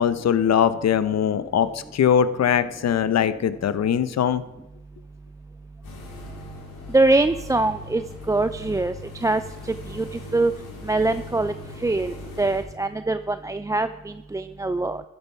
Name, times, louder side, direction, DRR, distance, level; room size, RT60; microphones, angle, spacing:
voice 1, 0.0-4.4, left 8 dB, 50° left, 13 dB, 0.9 m, -21 dB
sound 1, 5.8-12.6, left 2 dB, 75° left, 4.1 m, -40 dB
voice 2, 6.9-8.0 8.3-8.9 9.2-9.4 9.9-10.5 10.8-11.5 11.8-15.0, right 2 dB, 10° right, 11 dB, 0.4 m, -23 dB
12.0 x 9.8 x 4.6 m, 0.97 s
supercardioid pair, 60°, 33 cm